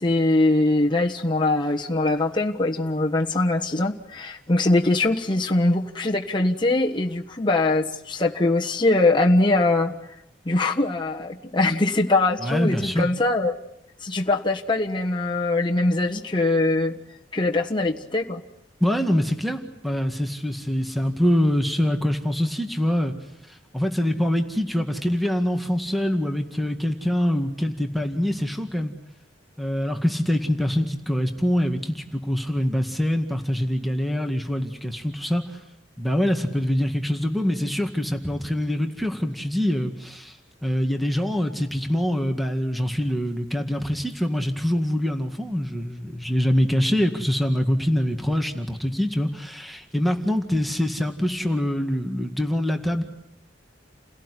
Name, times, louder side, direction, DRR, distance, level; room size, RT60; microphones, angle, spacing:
voice 1, 0.0-9.9 10.4-13.6 14.0-17.0 17.3-18.4, left 2 dB, 25° left, 1 dB, 1.4 m, -22 dB
voice 2, 12.4-13.1 18.8-23.1 23.5-28.9 29.6-35.6 36.0-40.4 40.6-53.0, equal, ahead, 5 dB, 2.0 m, -24 dB
29.5 x 17.5 x 9.9 m, 0.82 s
head